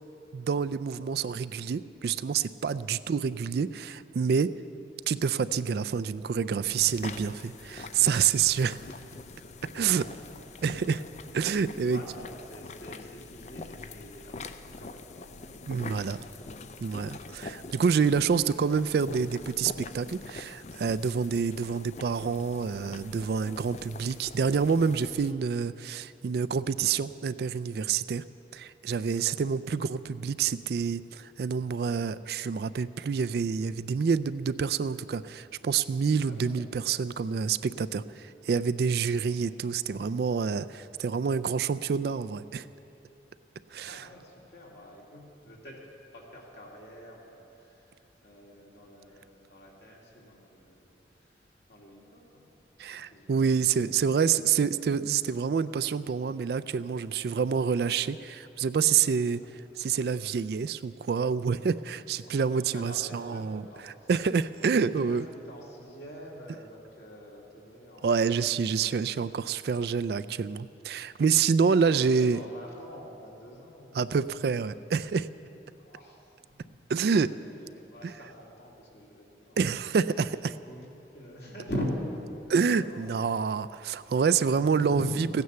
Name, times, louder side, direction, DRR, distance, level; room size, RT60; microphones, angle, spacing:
voice 1, 0.3-4.5 5.1-8.8 9.7-10.0 10.6-11.0 11.3-12.0 15.7-16.2 16.8-28.2 28.5-42.7 43.7-44.1 52.8-59.4 59.8-63.6 64.1-65.3 68.0-72.4 73.9-75.3 76.9-77.3 79.6-80.5 82.5-85.0, right 6 dB, 60° right, 14 dB, 0.3 m, -27 dB
sound 1, 6.6-25.3, left 3 dB, 40° left, 0.4 m, -44 dB
voice 2, 9.8-11.1 11.9-16.4 17.4-17.7 29.3-29.7 36.3-36.7 39.2-39.5 43.6-45.9 46.1-52.4 52.9-53.9 59.4-59.5 62.2-64.1 64.6-65.2 65.4-68.9 71.8-74.0 74.3-74.4 75.8-76.7 77.3-79.6 80.5-81.9 82.2-83.1 84.5-85.3, left 1 dB, 65° left, -3 dB, 2.6 m, -44 dB
15.5 x 9.6 x 6.8 m, 2.9 s
head